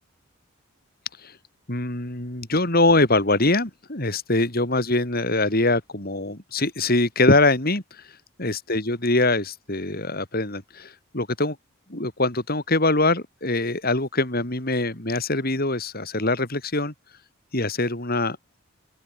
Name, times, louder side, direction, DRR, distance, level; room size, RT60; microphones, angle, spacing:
voice 1, 1.7-11.6 11.9-16.9 17.5-18.6, left 2 dB, 45° left, 4.0 m, -23 dB
open air
head